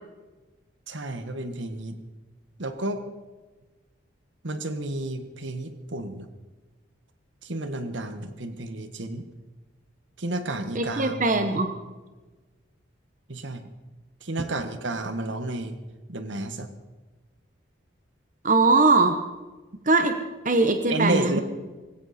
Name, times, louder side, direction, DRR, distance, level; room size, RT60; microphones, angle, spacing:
voice 1, 0.9-2.0 2.6-3.1 4.4-6.3 7.4-9.2 10.2-11.6 13.3-13.6 14.2-15.8 16.1-16.7 20.9-21.4, right 2 dB, 75° right, 9 dB, 1.5 m, -31 dB
voice 2, 10.7-11.7 18.4-19.2 19.9-20.1 20.4-21.4, right 3 dB, 40° right, 6 dB, 1.1 m, -21 dB
19.0 x 16.5 x 4.3 m, 1.2 s
head